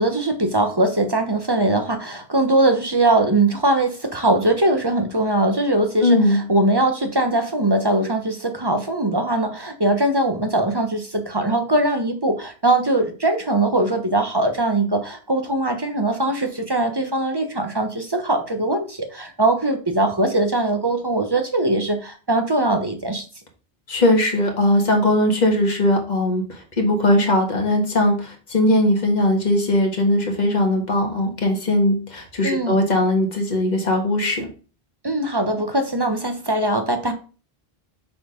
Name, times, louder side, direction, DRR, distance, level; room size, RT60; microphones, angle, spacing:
voice 1, 0.0-23.2 32.4-32.7 35.0-37.1, right 2 dB, 25° right, 5 dB, 1.0 m, -21 dB
voice 2, 6.0-6.4 23.9-34.5, left 1 dB, 45° left, 2 dB, 1.8 m, -19 dB
6.7 x 4.3 x 5.1 m, 0.36 s
omnidirectional pair, 1.0 m